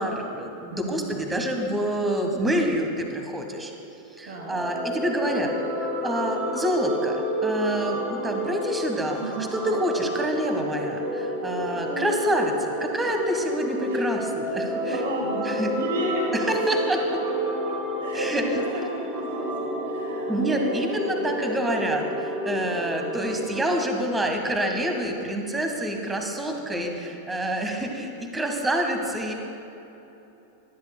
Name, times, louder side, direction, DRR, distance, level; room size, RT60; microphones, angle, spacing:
voice 1, 0.0-3.7 4.2-5.5 6.0-9.2 9.5-15.0 15.4-15.7 16.5-17.0 18.1-18.4 20.3-29.3, right 1 dB, 10° right, 3 dB, 1.4 m, -27 dB
voice 2, 0.7-1.2 4.2-4.6 9.2-9.6 11.8-12.3 13.9-14.1 14.8-16.7 17.0-21.3 26.4-27.4, equal, 60° right, 0 dB, 1.6 m, -34 dB
sound 1, 4.3-23.7, equal, 25° right, 1.9 m, -30 dB
21.5 x 10.5 x 2.3 m, 3.0 s
figure-of-eight pair, 90°, 0 cm